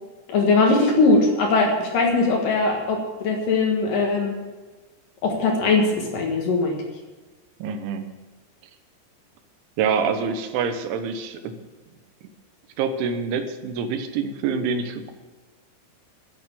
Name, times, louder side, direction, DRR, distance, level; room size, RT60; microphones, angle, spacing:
voice 1, 0.3-4.4 5.2-6.8, left 3 dB, 60° left, 1 dB, 2.7 m, -20 dB
voice 2, 7.6-8.1 9.8-11.5 12.8-15.1, right 6 dB, 85° right, 8 dB, 3.5 m, -26 dB
12.0 x 8.6 x 8.4 m, 1.3 s
omnidirectional pair, 5.3 m